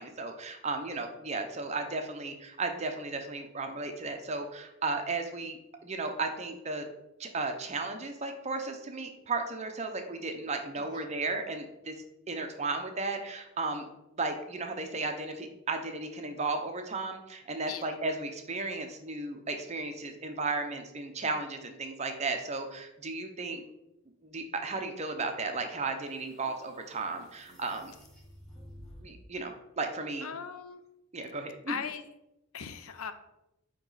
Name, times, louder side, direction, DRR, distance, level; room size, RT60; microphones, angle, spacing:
voice 1, 0.0-6.9 7.2-11.9 12.3-13.9 14.1-23.6 24.2-27.9 29.0-30.3 31.1-31.7, right 3 dB, 30° right, 5 dB, 0.6 m, -35 dB
voice 2, 10.8-11.1 17.6-18.0 30.2-30.8 31.7-32.0 32.5-33.1, left 6 dB, 75° left, 10 dB, 0.5 m, -39 dB
sound 1, 25.2-29.3, equal, ahead, 1.2 m, -53 dB
8.7 x 3.0 x 4.0 m, 0.89 s
head